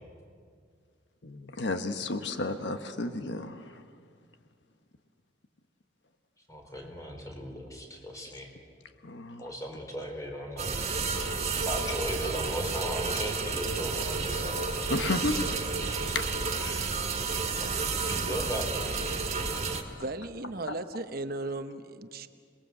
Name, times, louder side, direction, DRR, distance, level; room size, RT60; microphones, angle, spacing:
voice 1, 1.2-3.8 9.0-9.5 14.9-15.4 16.1-16.3, left 2 dB, 70° left, 7 dB, 1.2 m, -32 dB
voice 2, 6.5-8.5 9.4-10.8 11.7-14.7 16.6-16.9 17.5-19.0, equal, 20° left, 2 dB, 4.4 m, -37 dB
sound 1, 10.6-19.8, right 4 dB, 35° right, 2.3 m, -31 dB
voice 3, 20.0-22.3, right 2 dB, 55° right, 9 dB, 1.0 m, -36 dB
27.5 x 21.0 x 8.0 m, 2.1 s
head